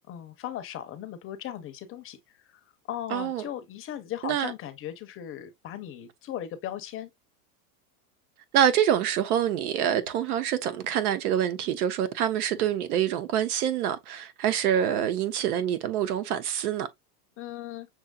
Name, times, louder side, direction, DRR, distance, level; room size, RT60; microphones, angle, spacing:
voice 1, 0.1-2.2 2.5-2.6 2.9-7.1 17.4-17.9, left 11 dB, 30° left, 0.6 m, -37 dB
voice 2, 3.1-3.5 4.2-4.5 8.5-16.9, right 10 dB, 75° right, 1.0 m, -26 dB
6.5 x 2.9 x 2.3 m
supercardioid pair, 125°, 45 cm